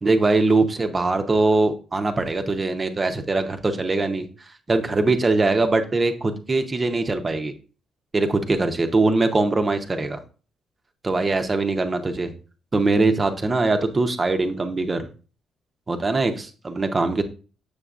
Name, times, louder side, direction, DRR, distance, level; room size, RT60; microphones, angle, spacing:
voice 1, 0.0-4.3 4.7-7.5 8.1-10.2 11.0-12.3 12.7-15.1 15.9-17.2, right 3 dB, 30° right, 6 dB, 0.8 m, -22 dB
6.8 x 6.7 x 2.4 m, 0.37 s
cardioid pair, 90°, 0 cm